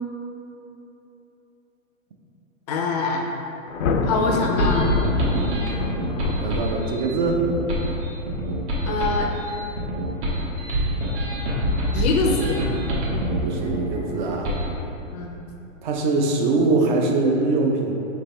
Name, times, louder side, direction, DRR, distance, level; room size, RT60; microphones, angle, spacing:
voice 1, 2.7-3.3 4.0-4.9 8.8-9.3 11.9-12.6 15.1-15.4, left 3 dB, 35° left, 1 dB, 0.4 m, -24 dB
Thunder, 3.7-7.0, left 4 dB, 85° left, 0.5 m, -26 dB
sound 1, 4.3-14.7, equal, 60° right, 1.2 m, -25 dB
voice 2, 6.4-7.5 13.4-14.6 15.8-17.9, right 3 dB, 40° right, 2 dB, 0.5 m, -23 dB
5.0 x 3.3 x 3.0 m, 3.0 s
hypercardioid pair, 135°, 40 cm